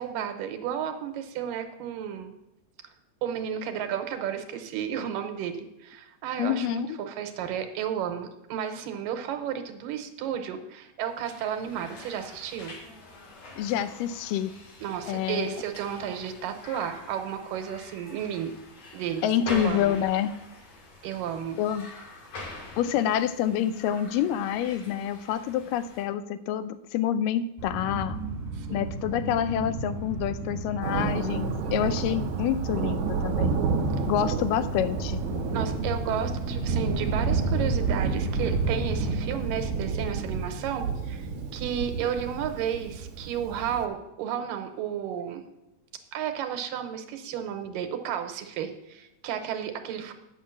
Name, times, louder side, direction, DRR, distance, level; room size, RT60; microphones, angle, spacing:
voice 1, 0.0-2.3 3.2-12.8 14.8-18.5 18.9-20.0 21.0-21.6 28.5-28.9 31.6-31.9 35.5-45.4 46.1-50.1, right 9 dB, 90° right, 7 dB, 2.5 m, -33 dB
voice 2, 6.4-7.0 13.6-14.5 15.1-15.5 19.2-20.3 21.6-21.9 22.8-28.2 28.7-33.6 34.1-35.2, left 10 dB, 85° left, 12 dB, 2.2 m, -27 dB
sound 1, 11.1-26.0, left 2 dB, 65° left, 3.5 m, -45 dB
sound 2, 27.6-39.1, right 2 dB, 25° right, 3.2 m, -33 dB
Thunder, 30.8-43.9, right 5 dB, 70° right, 2.2 m, -30 dB
9.2 x 5.7 x 7.3 m, 0.90 s
omnidirectional pair, 3.9 m